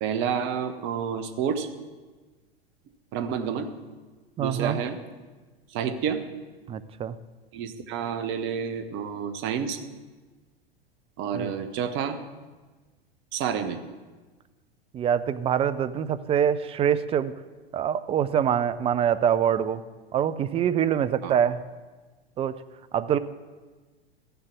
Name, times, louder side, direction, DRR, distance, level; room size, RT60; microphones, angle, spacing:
voice 1, 0.0-1.7 3.1-3.7 4.4-5.0 5.7-6.2 7.5-9.8 11.2-12.2 13.3-13.8 21.2-21.3, right 7 dB, 40° right, 9 dB, 1.2 m, -29 dB
voice 2, 4.4-4.8 6.7-7.2 11.3-11.5 14.9-17.3 17.7-19.8 20.1-21.6 22.4-22.5 22.9-23.2, right 9 dB, 20° right, 14 dB, 0.5 m, -24 dB
14.5 x 6.8 x 6.1 m, 1.3 s
figure-of-eight pair, 90°, 30 cm